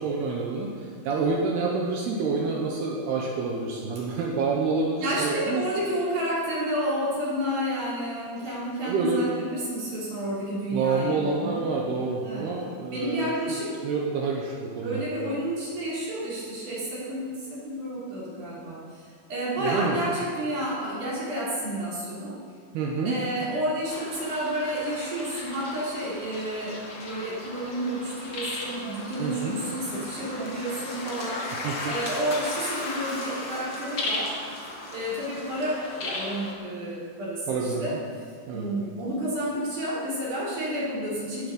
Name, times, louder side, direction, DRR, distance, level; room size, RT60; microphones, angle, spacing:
voice 1, 0.0-5.6 8.9-9.2 10.7-13.6 13.8-15.0 19.6-20.0 22.7-23.2 29.2-29.6 31.6-31.9 37.5-38.0 38.5-38.7, right 4 dB, 75° right, -1 dB, 2.9 m, -28 dB
voice 2, 5.0-11.7 12.2-12.4 12.9-13.8 14.8-22.4 23.0-31.6 31.9-34.3 34.9-38.0 38.5-41.5, right 1 dB, 50° right, -7 dB, 4.5 m, -30 dB
sound 1, 23.9-36.5, left 2 dB, 60° left, 1.2 m, -36 dB
18.5 x 7.7 x 5.5 m, 2.2 s
omnidirectional pair, 4.9 m